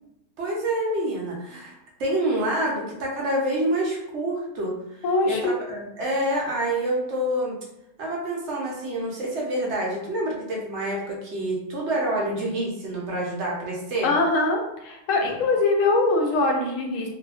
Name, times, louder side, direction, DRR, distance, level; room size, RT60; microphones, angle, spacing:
voice 1, 0.4-7.6 8.0-14.1, right 1 dB, 65° right, -2 dB, 1.0 m, -27 dB
voice 2, 5.0-5.5 14.0-17.1, left 2 dB, 85° left, 1 dB, 1.0 m, -22 dB
2.8 x 2.4 x 2.3 m, 0.87 s
omnidirectional pair, 1.3 m